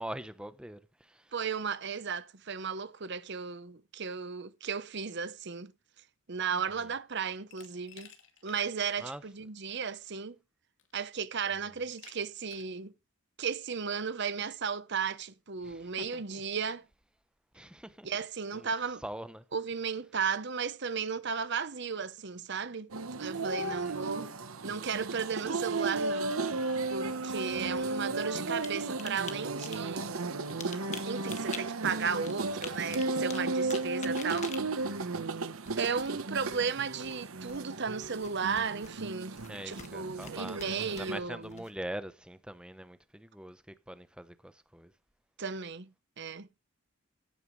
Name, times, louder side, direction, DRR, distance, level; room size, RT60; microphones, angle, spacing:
voice 1, 0.0-1.3 9.0-9.2 11.5-11.6 15.6-16.4 17.5-18.1 18.5-18.7 19.0-19.4 23.6-24.0 27.5-27.8 39.5-44.9, right 1 dB, 5° right, 0.8 m, -43 dB
voice 2, 1.3-5.7 6.3-8.1 8.4-10.4 10.9-12.9 13.4-16.8 18.0-19.0 19.5-22.9 23.2-24.3 24.6-26.4 26.9-30.3 31.0-34.5 34.8-34.9 35.7-39.4 39.7-41.6 45.4-46.5, right 6 dB, 55° right, 0.9 m, -35 dB
Glass, 7.5-8.6 9.0-9.1 10.2-10.3 10.8-11.2 12.0-12.8, left 8 dB, 65° left, 2.4 m, -55 dB
sound 1, 22.9-41.2, right 3 dB, 85° right, 1.0 m, -35 dB
sound 2, 27.6-28.7 29.0-29.3 29.6-29.9 30.4-31.6 32.0-36.2 36.5-36.7 37.0-37.7 38.0-38.9 39.3-40.3 40.6-41.9, left 6 dB, 35° left, 1.5 m, -45 dB
16.0 x 9.0 x 3.2 m
head